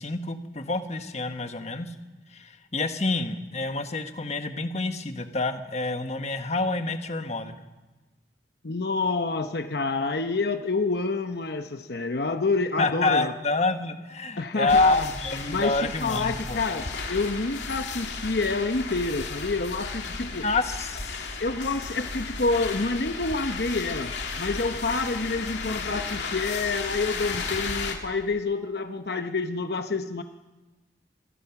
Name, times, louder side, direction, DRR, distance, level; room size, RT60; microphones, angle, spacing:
voice 1, 0.0-1.9 2.3-7.6 12.8-16.6 20.4-21.2, left 3 dB, 40° left, 7 dB, 1.3 m, -27 dB
voice 2, 8.6-13.3 14.4-15.1 15.5-20.4 21.4-30.2, left 3 dB, 65° left, 7 dB, 0.9 m, -28 dB
sound 1, 14.7-27.9, left 4 dB, 80° left, 2.6 m, -34 dB
26.5 x 20.0 x 5.9 m, 1.2 s
head